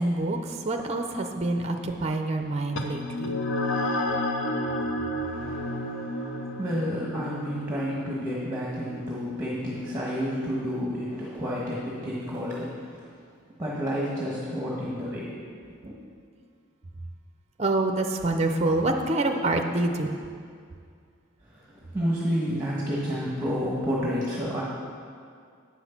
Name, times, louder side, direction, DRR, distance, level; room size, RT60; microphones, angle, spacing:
voice 1, 0.0-3.4 17.6-20.2, right 2 dB, 30° right, 5 dB, 0.5 m, -26 dB
sound 1, 2.8-11.6, left 1 dB, 65° left, 0.7 m, -32 dB
voice 2, 5.2-13.0 13.6-15.3 15.8-15.9 21.5-24.6, equal, 10° right, -6 dB, 1.2 m, -30 dB
8.4 x 6.2 x 5.8 m, 2.2 s
head